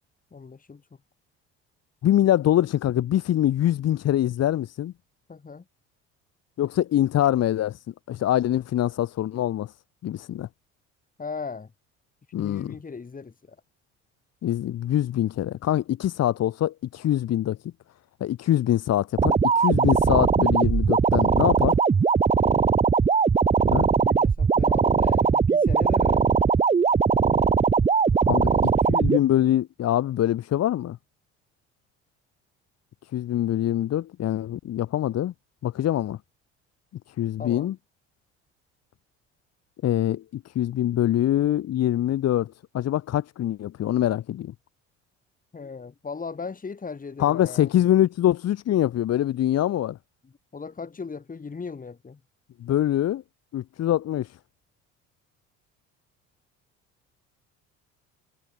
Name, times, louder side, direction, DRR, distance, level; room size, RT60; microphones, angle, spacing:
voice 1, 0.3-0.9 5.3-5.7 11.2-11.7 12.4-13.6 23.9-26.4 28.3-29.1 37.4-37.7 45.5-47.7 50.2-52.2, left 5 dB, 25° left, 5.6 m, -38 dB
voice 2, 2.0-4.9 6.6-7.8 8.1-9.7 10.0-10.5 12.3-12.7 14.4-17.6 18.2-21.7 23.7-23.9 28.3-28.5 28.9-31.0 33.1-35.3 35.6-36.2 37.2-37.7 39.8-44.5 47.2-50.0 52.6-53.2 53.5-54.3, left 12 dB, 55° left, 2.5 m, -24 dB
sound 1, 19.2-29.2, right 5 dB, 20° right, 0.8 m, -20 dB
supercardioid pair, 85°, 30 cm